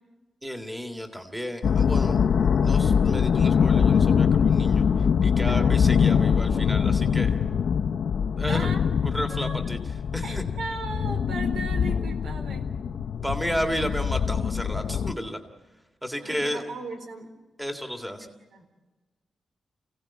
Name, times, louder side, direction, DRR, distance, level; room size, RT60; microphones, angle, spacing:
voice 1, 0.4-7.4 8.4-8.7 9.0-10.4 13.2-15.4 16.0-16.6 17.6-18.3, equal, 5° right, 4 dB, 1.9 m, -33 dB
sound 1, 1.6-15.1, left 7 dB, 65° left, 0.8 m, -23 dB
voice 2, 5.5-6.1 8.5-8.8 9.3-9.6 10.2-12.6 16.2-17.3 18.0-18.6, right 3 dB, 80° right, 6 dB, 4.2 m, -38 dB
30.0 x 17.0 x 8.5 m, 1.2 s
wide cardioid pair, 165°, 0 cm